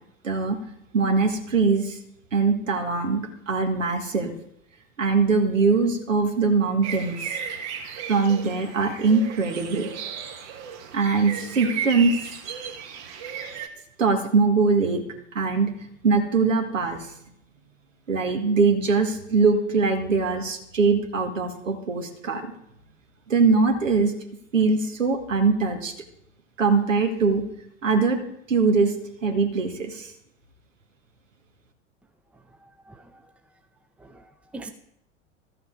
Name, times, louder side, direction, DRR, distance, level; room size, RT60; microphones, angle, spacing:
voice 1, 0.2-0.6 0.9-2.0 2.3-4.3 5.0-7.2 8.1-9.9 10.9-12.1 14.0-15.0 15.4-15.7 16.0-17.0 18.1-22.5 23.3-24.1 24.5-25.9 26.6-27.4 27.8-28.2 28.5-28.9 29.2-30.1, right 4 dB, 75° right, 4 dB, 1.7 m, -22 dB
sound 1, 6.8-13.7, right 7 dB, 45° right, 1.3 m, -35 dB
voice 2, 32.6-33.1 34.0-34.7, right 2 dB, 5° right, 7 dB, 0.7 m, -43 dB
13.0 x 7.6 x 4.6 m, 0.76 s
figure-of-eight pair, 80°, 38 cm